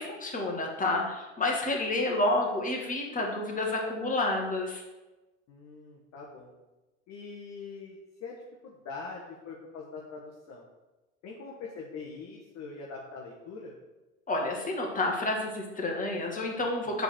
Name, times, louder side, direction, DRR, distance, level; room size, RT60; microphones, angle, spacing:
voice 1, 0.0-4.8 14.3-17.0, left 2 dB, 20° left, 0 dB, 2.0 m, -29 dB
voice 2, 5.5-6.5 7.1-8.4 8.6-10.6 11.2-13.7, left 4 dB, 45° left, -2 dB, 1.3 m, -43 dB
7.4 x 4.0 x 6.6 m, 1.1 s
figure-of-eight pair, 70°, 39 cm